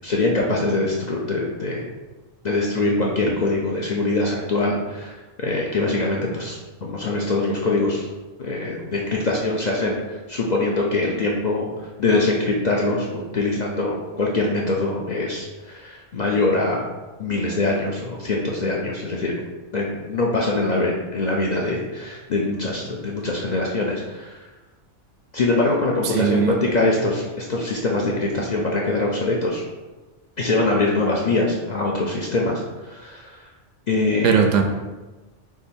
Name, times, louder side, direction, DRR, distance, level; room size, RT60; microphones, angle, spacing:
voice 1, 0.0-1.9 2.4-8.1 8.4-11.7 12.0-16.9 17.2-19.4 19.7-24.4 25.3-29.6 30.4-33.4 33.9-34.4, left 2 dB, 50° left, -2 dB, 0.5 m, -23 dB
voice 2, 26.0-26.6 34.2-34.6, right 6 dB, 85° right, 5 dB, 0.9 m, -19 dB
3.7 x 3.0 x 4.3 m, 1.2 s
omnidirectional pair, 1.3 m